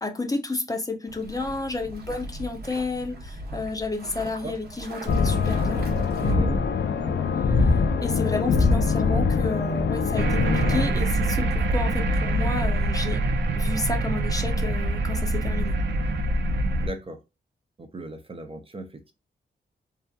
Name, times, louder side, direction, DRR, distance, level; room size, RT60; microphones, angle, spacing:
voice 1, 0.0-5.8 7.6-7.7 8.0-13.2 13.6-15.8, left 3 dB, 20° left, 4 dB, 0.6 m, -31 dB
sound 1, 1.1-6.3, right 1 dB, 60° right, 0.9 m, -40 dB
sound 2, 5.1-10.9, left 4 dB, 75° left, 0.5 m, -23 dB
voice 2, 6.2-6.7 7.0-7.2 8.2-8.6 16.8-17.2 17.8-19.1, right 2 dB, 30° right, 6 dB, 0.5 m, -36 dB
sound 3, 10.2-16.9, right 1 dB, 85° right, 0.5 m, -24 dB
2.7 x 2.4 x 2.2 m, 0.26 s
cardioid pair, 90°, 18 cm